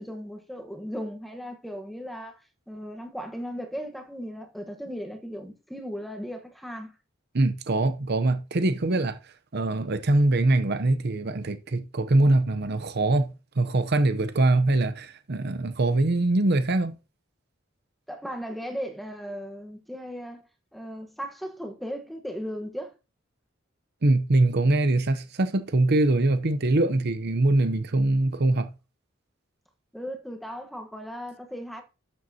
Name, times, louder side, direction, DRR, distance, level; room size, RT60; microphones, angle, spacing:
voice 1, 0.0-2.4 2.7-6.9 18.1-20.4 20.7-22.9 29.9-31.8, equal, ahead, 1.3 m, -36 dB
voice 2, 7.3-9.2 9.5-13.3 13.6-16.9 24.0-28.7, right 2 dB, 55° right, 0.8 m, -23 dB
12.5 x 7.6 x 2.9 m
head